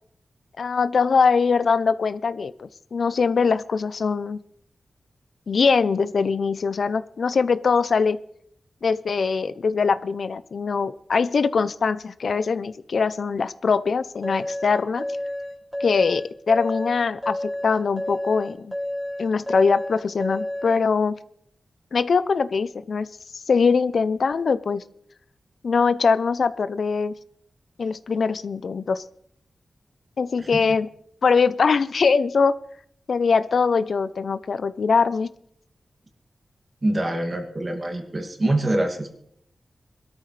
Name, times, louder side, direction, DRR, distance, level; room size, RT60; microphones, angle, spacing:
voice 1, 0.6-4.4 5.5-8.2 8.8-15.1 15.8-18.7 19.2-21.2 21.9-23.1 23.5-24.8 25.6-27.1 27.8-29.0 30.2-30.9 31.2-32.5 33.1-35.3, left 5 dB, 75° left, 14 dB, 0.5 m, -22 dB
sound 1, 14.2-20.8, left 1 dB, 5° left, 2.8 m, -30 dB
voice 2, 36.8-39.2, right 1 dB, 40° right, 4 dB, 2.3 m, -25 dB
21.0 x 13.0 x 3.3 m, 0.69 s
cardioid pair, 65°, 0 cm